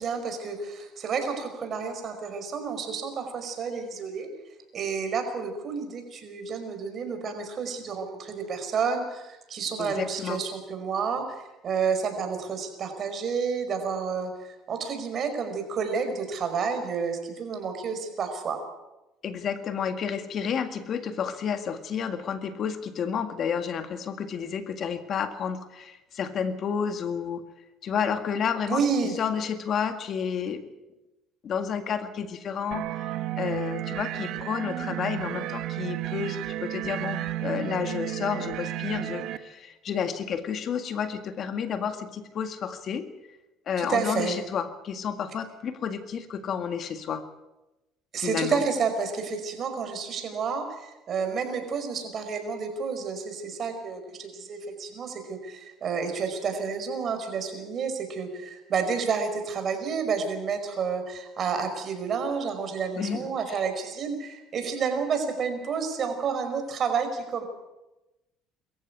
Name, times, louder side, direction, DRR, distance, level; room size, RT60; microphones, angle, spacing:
voice 1, 0.0-4.3 4.7-18.6 28.7-29.1 43.8-44.4 48.1-67.4, right 5 dB, 45° right, 7 dB, 5.0 m, -30 dB
voice 2, 9.8-10.4 19.2-27.4 27.8-28.8 29.2-30.7 31.4-43.1 43.7-47.2 48.2-48.6 63.0-63.3, left 7 dB, 50° left, 9 dB, 1.9 m, -31 dB
sound 1, 32.7-39.4, right 14 dB, 65° right, 1.3 m, -32 dB
23.0 x 14.5 x 8.3 m, 1.0 s
supercardioid pair, 100°, 0 cm